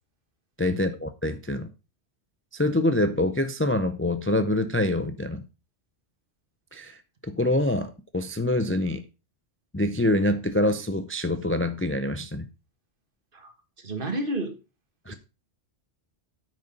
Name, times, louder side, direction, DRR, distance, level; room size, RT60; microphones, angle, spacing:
voice 1, 0.6-1.7 2.5-5.4 6.7-9.0 9.7-12.5 15.1-15.2, left 1 dB, 15° left, 0.5 m, -25 dB
voice 2, 13.8-14.5 15.1-15.2, right 1 dB, 50° right, 1.7 m, -30 dB
8.8 x 6.4 x 5.3 m
omnidirectional pair, 1.2 m